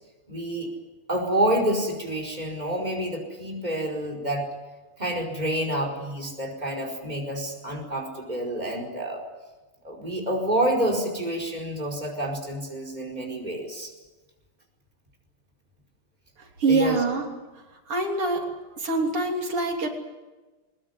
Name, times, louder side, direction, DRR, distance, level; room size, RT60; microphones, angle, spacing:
voice 1, 0.3-0.7 1.1-4.5 5.0-9.2 9.8-13.9 16.7-17.0, right 1 dB, 20° right, -1 dB, 4.9 m, -28 dB
voice 2, 16.6-17.2 17.9-18.4 18.8-19.9, right 3 dB, 85° right, 1 dB, 4.2 m, -24 dB
23.0 x 21.0 x 9.5 m, 1.2 s
omnidirectional pair, 2.4 m